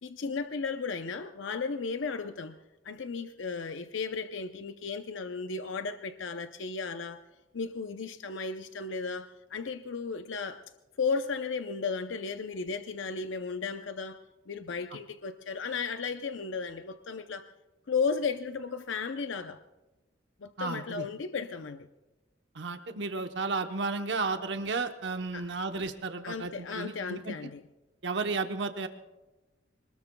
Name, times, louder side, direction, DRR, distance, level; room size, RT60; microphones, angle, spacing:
voice 1, 0.0-2.6 2.8-7.2 7.5-10.6 11.0-14.2 14.5-17.5 17.9-19.6 20.4-21.9 25.3-25.5 26.2-27.6, left 5 dB, 80° left, 0.6 m, -34 dB
voice 2, 20.6-21.1 22.5-27.4 28.0-28.9, right 3 dB, 65° right, 0.9 m, -33 dB
25.5 x 20.0 x 2.3 m
head